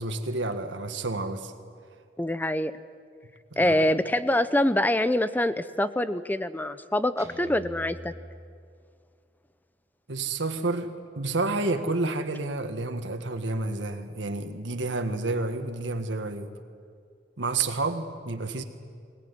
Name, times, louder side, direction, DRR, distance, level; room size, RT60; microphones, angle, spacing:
voice 1, 0.0-1.5 3.5-3.8 10.1-16.5 17.4-18.6, right 3 dB, 90° right, 7 dB, 1.7 m, -30 dB
voice 2, 2.2-2.7 3.6-8.1, left 1 dB, 10° left, 13 dB, 0.6 m, -25 dB
Guitar, 7.2-9.2, right 1 dB, 15° right, 2.8 m, -45 dB
21.5 x 18.5 x 9.7 m, 2.2 s
head